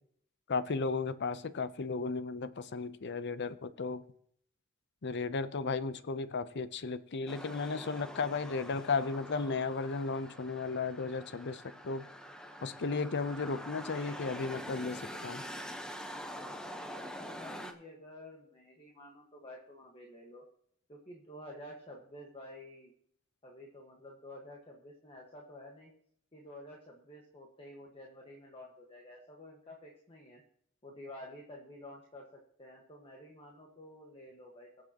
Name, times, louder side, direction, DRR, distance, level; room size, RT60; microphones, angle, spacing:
voice 1, 0.5-4.0 5.0-12.1 12.6-15.4, left 4 dB, 55° left, 14 dB, 0.6 m, -35 dB
sound 1, 7.3-17.7, equal, 5° left, 1.0 m, -45 dB
voice 2, 17.3-20.4 20.9-22.9 23.4-25.9 26.3-30.4 30.8-34.7, left 1 dB, 25° left, -1 dB, 1.5 m, -50 dB
22.0 x 7.5 x 2.9 m, 0.64 s
head